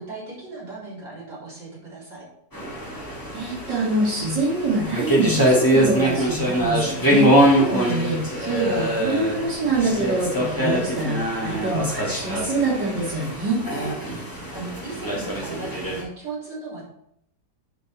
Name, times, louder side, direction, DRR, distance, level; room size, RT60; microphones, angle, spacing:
voice 1, 0.0-2.3 14.0-16.8, right 3 dB, 65° right, -7 dB, 4.8 m, -37 dB
sound 1, 2.5-16.0, right 1 dB, 10° left, 2.8 m, -23 dB
voice 2, 3.3-13.6, right 2 dB, 90° right, -5 dB, 3.2 m, -25 dB
10.5 x 5.4 x 4.6 m, 0.75 s
omnidirectional pair, 1.8 m